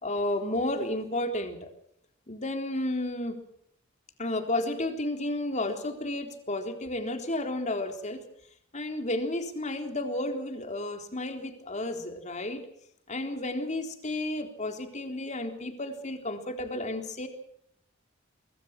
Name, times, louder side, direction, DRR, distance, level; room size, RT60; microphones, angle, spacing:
voice 1, 0.0-1.7 2.3-3.4 4.2-8.2 8.7-12.6 13.1-17.3, left 1 dB, 35° left, 6 dB, 3.8 m, -32 dB
24.0 x 23.5 x 6.1 m, 0.69 s
head